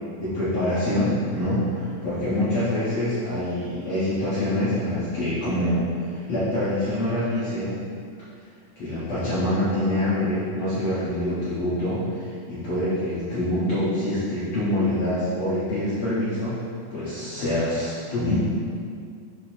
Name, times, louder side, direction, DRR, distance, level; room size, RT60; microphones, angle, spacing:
voice 1, 0.2-7.7 8.7-16.6 16.9-18.3, left 1 dB, 85° left, -12 dB, 1.2 m, -25 dB
8.0 x 6.5 x 3.1 m, 2.3 s
omnidirectional pair, 5.2 m